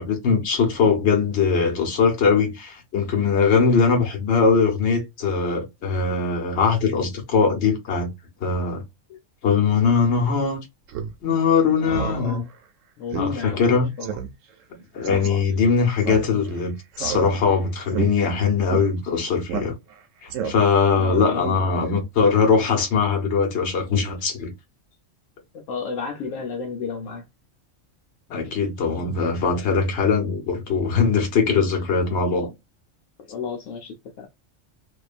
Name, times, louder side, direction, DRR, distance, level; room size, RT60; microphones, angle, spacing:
voice 1, 0.0-8.1 8.4-8.8 9.4-10.6 11.2-12.4 13.2-13.9 14.7-19.7 20.2-24.5 28.3-32.5, left 5 dB, 60° left, 1.2 m, -21 dB
Speech synthesizer, 10.9-11.1 11.5-11.6 11.9-12.2 12.5-12.6 13.1-13.3 13.6-13.7 14.0-14.3 15.0-15.3 16.0-16.6 16.9-17.5 17.9-18.1 18.7-18.8 19.5-20.0 20.3-20.8, right 8 dB, 80° right, 1.0 m, -30 dB
voice 2, 11.8-12.5 13.0-14.2 15.1-15.5 20.9-21.9 25.5-27.3 28.4-28.5 33.2-34.3, left 5 dB, 80° left, 1.0 m, -32 dB
2.7 x 2.3 x 2.4 m
omnidirectional pair, 1.3 m